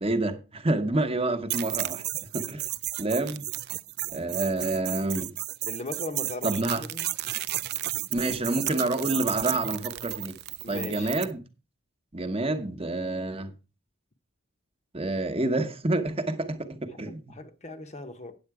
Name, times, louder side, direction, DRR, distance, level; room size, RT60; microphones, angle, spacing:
voice 1, 0.0-2.0 2.3-2.7 3.0-3.5 4.1-5.4 6.4-6.8 8.1-10.4 10.7-11.4 12.1-13.5 14.9-17.3, right 2 dB, 25° right, 1.0 m, -28 dB
sound 1, 1.5-11.3, right 15 dB, 45° right, 0.4 m, -33 dB
voice 2, 5.7-7.1 10.6-11.1 17.0-18.3, left 2 dB, 30° left, 0.8 m, -38 dB
8.8 x 7.9 x 4.7 m
head